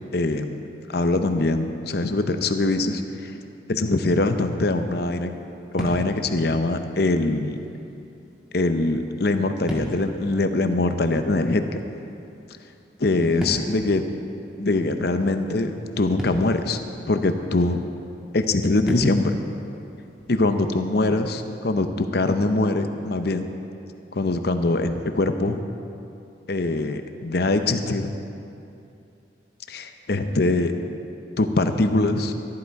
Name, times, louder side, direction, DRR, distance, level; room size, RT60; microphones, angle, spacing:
voice 1, 0.1-0.6 0.9-3.3 3.7-5.3 5.7-7.6 8.5-11.8 13.0-14.0 14.6-16.8 17.1-17.8 18.3-19.4 20.3-23.4 24.1-25.6 26.5-28.1 29.7-30.7 31.4-32.3, left 2 dB, 55° left, 8 dB, 0.7 m, -23 dB
sound 1, 5.0-20.8, equal, 5° right, 1.7 m, -39 dB
13.0 x 11.5 x 4.7 m, 2.7 s
head